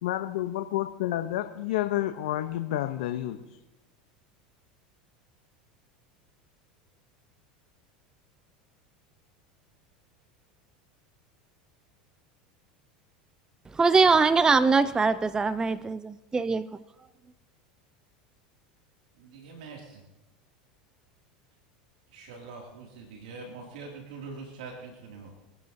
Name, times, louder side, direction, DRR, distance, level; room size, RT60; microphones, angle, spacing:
voice 1, 0.0-3.4, left 13 dB, 75° left, 0.7 m, -29 dB
voice 2, 13.7-16.8, right 4 dB, 15° right, 0.4 m, -23 dB
voice 3, 19.2-20.0 22.1-25.4, right 4 dB, 75° right, 2.4 m, -43 dB
23.5 x 11.0 x 2.7 m
hypercardioid pair, 95°, 4 cm